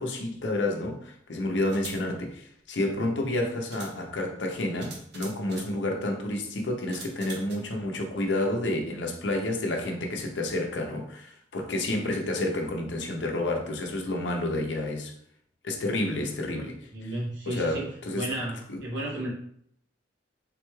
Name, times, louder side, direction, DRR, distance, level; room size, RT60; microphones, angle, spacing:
voice 1, 0.0-15.1 15.6-16.9 17.5-18.3 18.7-18.8, left 1 dB, 80° left, 0.6 m, -30 dB
sound 1, 0.6-0.7 1.6-2.0 3.2-3.3 3.7-4.0 4.8-5.7 6.9-7.6, right 3 dB, 65° right, 0.8 m, -43 dB
voice 2, 16.5-17.8 18.2-19.3, right 1 dB, 85° right, 1.1 m, -33 dB
3.7 x 2.3 x 3.0 m
head